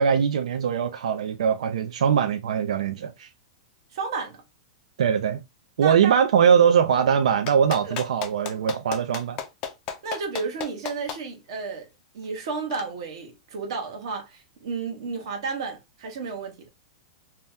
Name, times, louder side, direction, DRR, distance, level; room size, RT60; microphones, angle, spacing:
voice 1, 0.0-3.3 5.0-5.4 5.8-9.4, right 7 dB, 90° right, 0.4 m, -21 dB
voice 2, 3.9-4.4 5.8-6.1 7.8-8.0 10.0-11.9 12.1-16.7, right 4 dB, 50° right, 1.0 m, -32 dB
Clapping, 7.5-11.2 12.7-12.8, left 7 dB, 25° left, 0.4 m, -33 dB
2.7 x 2.2 x 3.3 m
supercardioid pair, 175°, 4 cm